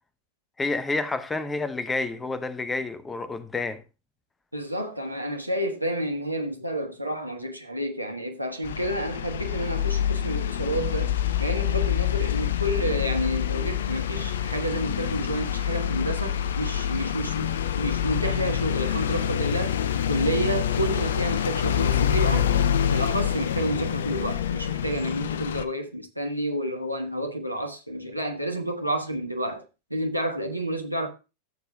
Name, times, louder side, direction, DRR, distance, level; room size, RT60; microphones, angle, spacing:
voice 1, 0.6-3.8, left 3 dB, 10° left, 0.8 m, -29 dB
voice 2, 4.5-11.1 11.4-19.7 20.1-22.5 22.8-29.6 29.9-31.1, right 1 dB, 90° right, 1.3 m, -30 dB
sound 1, 8.6-25.6, left 9 dB, 60° left, 0.5 m, -26 dB
14.5 x 7.0 x 2.3 m
figure-of-eight pair, 90°, 0 cm